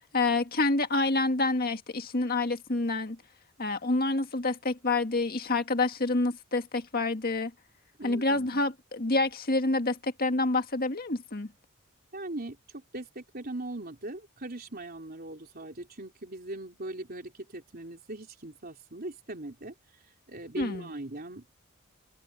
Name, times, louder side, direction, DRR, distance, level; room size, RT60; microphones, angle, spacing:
voice 1, 0.1-3.2 3.6-7.5 8.0-11.5 20.6-20.9, left 2 dB, 45° left, 1.8 m, -28 dB
voice 2, 8.0-8.6 12.1-19.7 20.3-21.6, right 2 dB, 45° right, 3.8 m, -40 dB
head